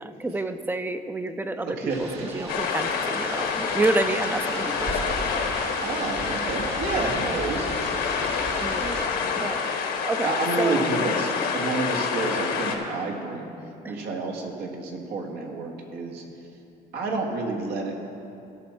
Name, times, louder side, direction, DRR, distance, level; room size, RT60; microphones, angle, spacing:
voice 1, 0.0-2.1 2.3-5.8 6.6-6.8 8.6-9.6 10.0-10.9, right 2 dB, 10° right, 9 dB, 0.5 m, -29 dB
voice 2, 1.6-2.3 5.8-7.7 10.2-13.5 13.9-16.2 16.9-17.9, right 3 dB, 75° right, 1 dB, 1.7 m, -29 dB
sound 1, 1.9-9.0, right 2 dB, 35° right, 1.6 m, -37 dB
sound 2, 2.5-12.8, left 5 dB, 75° left, 1.3 m, -27 dB
16.5 x 6.0 x 4.4 m, 2.7 s
cardioid pair, 110°, 17 cm